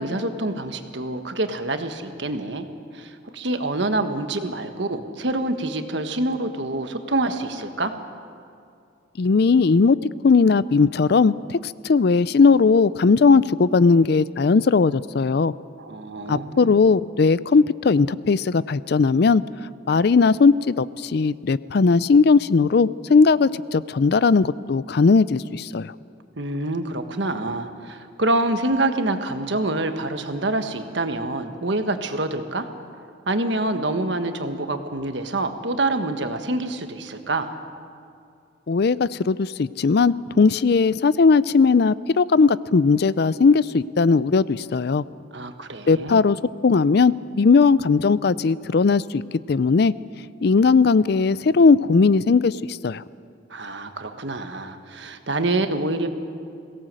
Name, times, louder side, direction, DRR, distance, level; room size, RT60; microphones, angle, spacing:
voice 1, 0.0-2.7 2.9-7.9 15.8-16.8 26.4-32.7 33.3-37.5 45.3-46.2 53.5-56.1, right 2 dB, 65° right, 7 dB, 1.5 m, -26 dB
voice 2, 9.2-10.0 10.2-15.5 16.3-19.4 19.9-25.9 38.7-45.0 45.9-46.4 46.6-49.2 49.5-49.9 50.4-53.0, left 4 dB, 55° left, 18 dB, 0.4 m, -18 dB
22.5 x 17.5 x 7.7 m, 2.4 s
head